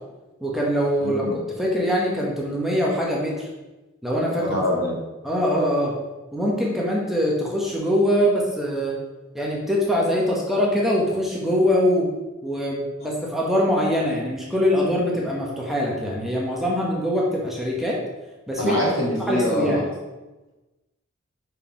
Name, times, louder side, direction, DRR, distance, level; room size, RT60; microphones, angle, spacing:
voice 1, 0.4-1.3 1.6-3.5 4.0-4.6 5.2-5.9 6.3-8.9 9.3-12.1 12.4-18.0 18.5-18.7 19.2-19.8, equal, ahead, -4 dB, 1.1 m, -23 dB
voice 2, 1.0-1.3 4.4-5.0 18.6-19.8, left 1 dB, 80° left, -4 dB, 2.6 m, -24 dB
5.5 x 4.6 x 5.8 m, 1.1 s
head